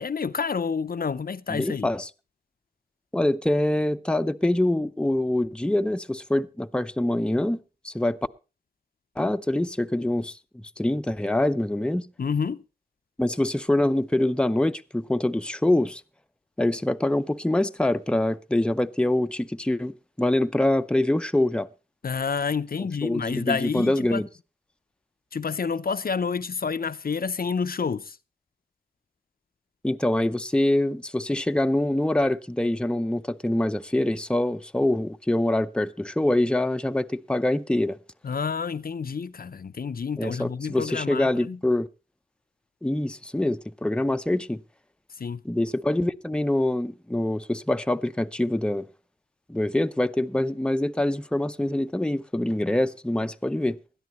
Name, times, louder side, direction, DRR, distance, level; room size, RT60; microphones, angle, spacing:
voice 1, 0.0-1.9 12.2-12.6 22.0-24.2 25.3-28.2 38.2-41.6 45.2-45.4, left 5 dB, 70° left, 0.6 m, -29 dB
voice 2, 1.5-2.1 3.1-8.2 9.2-12.1 13.2-16.0 16.6-21.7 23.0-24.3 29.8-38.0 40.2-41.9 42.8-44.6 45.4-48.9 49.5-53.8, left 1 dB, 5° left, 0.6 m, -25 dB
20.5 x 12.5 x 3.0 m
wide cardioid pair, 70°, 16 cm